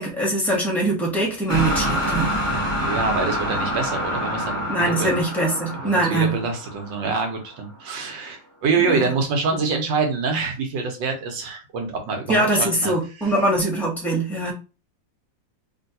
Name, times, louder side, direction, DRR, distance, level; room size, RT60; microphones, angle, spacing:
voice 1, 0.0-2.4 4.7-6.4 8.8-9.0 12.3-14.5, right 1 dB, ahead, -1 dB, 0.6 m, -22 dB
sound 1, 1.5-7.5, equal, 30° right, 1.1 m, -26 dB
voice 2, 2.8-5.2 5.7-12.9 13.2-13.3, right 4 dB, 80° right, 3 dB, 1.6 m, -26 dB
3.6 x 2.6 x 2.7 m, 0.30 s
omnidirectional pair, 2.0 m